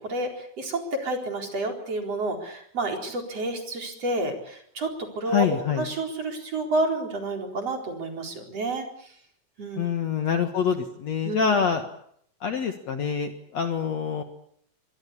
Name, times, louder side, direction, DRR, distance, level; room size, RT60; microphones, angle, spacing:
voice 1, 0.0-5.5 5.7-8.9 9.6-9.9 11.2-11.5, right 2 dB, 40° right, 3 dB, 5.1 m, -30 dB
voice 2, 5.3-5.9 9.8-11.8 12.4-14.2, left 7 dB, 55° left, 7 dB, 2.2 m, -26 dB
24.5 x 21.5 x 8.4 m, 0.67 s
omnidirectional pair, 4.4 m